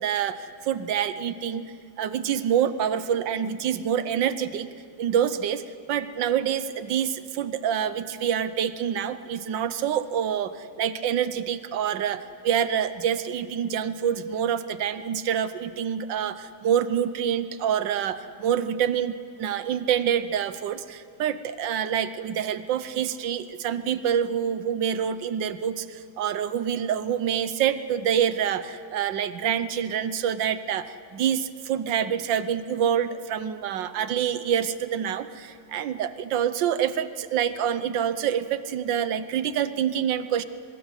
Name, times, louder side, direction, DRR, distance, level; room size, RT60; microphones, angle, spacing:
voice 1, 0.0-1.6 2.0-4.7 5.0-5.6 5.9-40.4, right 9 dB, 85° right, 13 dB, 1.6 m, -26 dB
23.5 x 21.5 x 8.1 m, 2.2 s
omnidirectional pair, 1.9 m